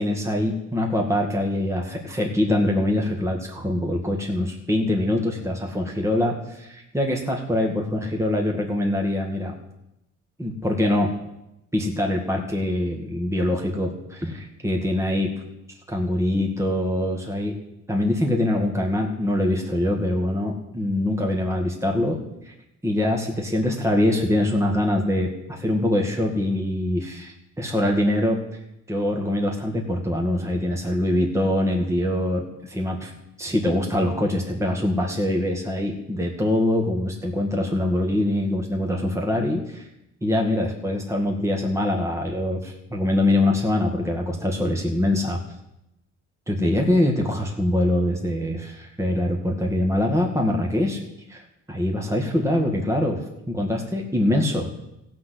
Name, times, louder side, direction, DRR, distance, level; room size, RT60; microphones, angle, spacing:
voice 1, 0.0-9.5 10.4-11.1 11.7-15.3 15.9-17.5 17.9-22.2 22.5-22.6 22.8-28.4 28.9-33.1 33.4-39.9 40.2-45.4 46.5-51.0 51.3-51.4 51.7-53.2 53.5-54.7, left 1 dB, 10° right, 1 dB, 2.0 m, -24 dB
15.0 x 6.1 x 8.4 m, 0.87 s
cardioid pair, 90°, 30 cm